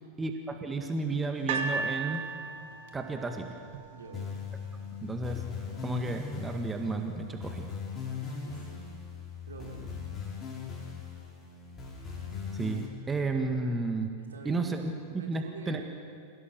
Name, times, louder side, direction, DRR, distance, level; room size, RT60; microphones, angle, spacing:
voice 1, 0.2-2.2 2.9-3.5 5.0-5.4 5.8-7.7 12.5-14.1 14.4-15.8, right 3 dB, 15° right, 4 dB, 1.8 m, -32 dB
sound 1, 1.5-4.7 5.4-5.5, right 4 dB, 55° right, 1.7 m, -36 dB
voice 2, 3.9-4.3 8.4-8.8 9.5-9.9 14.3-14.9 15.1-15.8, right 4 dB, 70° right, 1 dB, 3.2 m, -46 dB
sound 2, 4.1-12.9, left 6 dB, 25° left, 5.4 m, -39 dB
27.0 x 17.0 x 7.0 m, 2.3 s
figure-of-eight pair, 90°, 0 cm